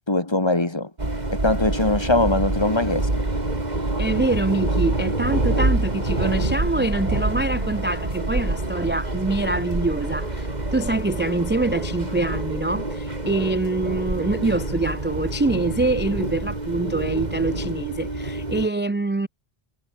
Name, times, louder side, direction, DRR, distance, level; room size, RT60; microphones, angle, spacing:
voice 1, 0.1-0.9 1.3-3.1, left 2 dB, 25° left, 1.9 m, -21 dB
sound 1, 1.0-18.7, right 2 dB, 45° right, 3.4 m, -26 dB
voice 2, 4.0-19.3, right 2 dB, 15° right, 0.3 m, -25 dB
omnidirectional pair, 1.0 m